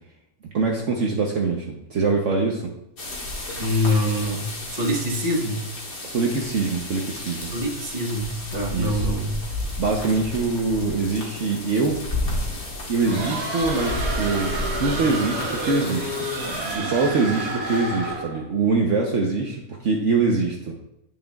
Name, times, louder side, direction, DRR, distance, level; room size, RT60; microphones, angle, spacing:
voice 1, 0.4-2.7 6.0-7.5 8.7-9.1 9.8-12.0 12.9-16.3 16.7-20.7, right 4 dB, 55° right, 0 dB, 1.1 m, -24 dB
sound 1, 3.0-16.8, left 1 dB, 65° left, 2.2 m, -32 dB
voice 2, 3.6-5.7 7.5-9.4, left 1 dB, 30° right, 0 dB, 1.1 m, -25 dB
sound 2, 13.0-18.4, right 1 dB, 85° right, 2.0 m, -29 dB
9.9 x 7.4 x 2.3 m, 0.80 s
omnidirectional pair, 1.6 m